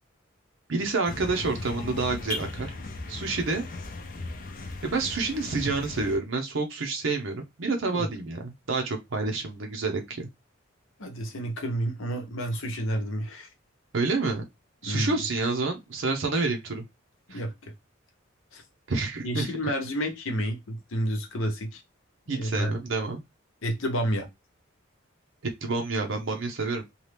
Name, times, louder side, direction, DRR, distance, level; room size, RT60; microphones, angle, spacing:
voice 1, 0.7-2.7 3.1-3.6 4.8-10.3 13.9-14.4 14.8-16.8 17.3-17.4 18.9-19.5 22.3-23.2 25.6-26.8, right 3 dB, 65° right, 0.7 m, -28 dB
sound 1, 1.1-6.2, left 2 dB, 40° left, 0.5 m, -37 dB
voice 2, 11.0-13.5 14.8-15.2 17.3-17.7 18.5-18.6 19.2-21.8 22.3-22.8 23.6-24.3, equal, 70° left, 0.8 m, -30 dB
2.8 x 2.3 x 3.2 m
head